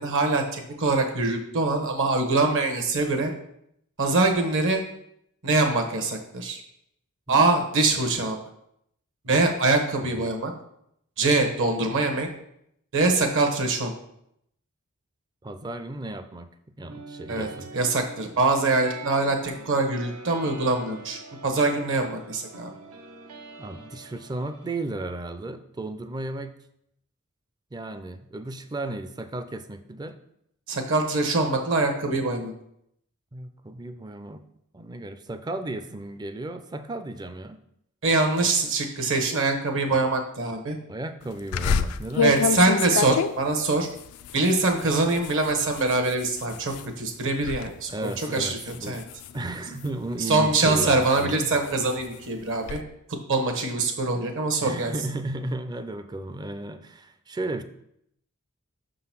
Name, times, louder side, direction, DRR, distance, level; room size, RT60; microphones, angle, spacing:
voice 1, 0.0-3.3 4.0-4.8 5.4-6.6 7.3-8.4 9.2-10.5 11.2-12.3 12.9-13.9 17.3-22.7 30.7-32.5 38.0-40.8 42.2-43.9 44.3-49.0 50.3-52.8 53.3-54.9, right 3 dB, 60° right, 5 dB, 1.1 m, -24 dB
voice 2, 15.4-17.7 23.6-26.5 27.7-30.2 33.3-34.4 34.7-37.6 40.9-42.7 47.9-49.0 49.3-51.5 54.6-57.6, right 2 dB, 20° right, 10 dB, 0.4 m, -34 dB
sound 1, 16.8-24.8, right 3 dB, 85° right, 0.9 m, -44 dB
sound 2, 41.5-46.9 47.3-47.7 48.0-50.1 50.6-52.8, left 6 dB, 90° left, 0.4 m, -29 dB
6.0 x 3.9 x 5.9 m, 0.75 s
head